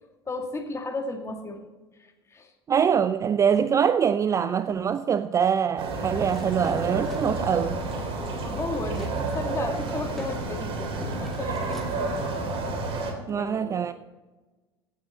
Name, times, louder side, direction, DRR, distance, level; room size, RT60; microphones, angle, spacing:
voice 1, 0.3-1.6 2.0-2.5 8.4-12.4 13.3-13.9, left 3 dB, 20° left, 2.2 m, -34 dB
voice 2, 2.7-7.8 13.3-13.9, right 7 dB, 25° right, 0.4 m, -24 dB
sound 1, 5.8-13.1, right 3 dB, 45° right, 3.4 m, -30 dB
sound 2, 6.3-9.2 9.5-12.0, left 1 dB, ahead, 2.7 m, -44 dB
16.0 x 8.5 x 4.2 m
figure-of-eight pair, 70°, 13 cm